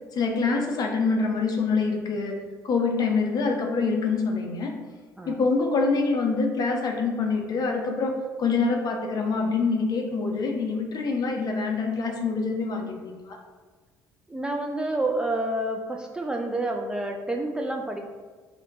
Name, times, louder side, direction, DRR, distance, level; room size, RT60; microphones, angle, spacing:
voice 1, 0.1-2.4 2.6-4.7 5.3-13.4, left 4 dB, 40° left, 2 dB, 0.5 m, -25 dB
voice 2, 14.3-18.1, right 1 dB, 10° right, 1 dB, 0.3 m, -29 dB
2.5 x 2.1 x 3.9 m, 1.4 s
figure-of-eight pair, 50°, 10 cm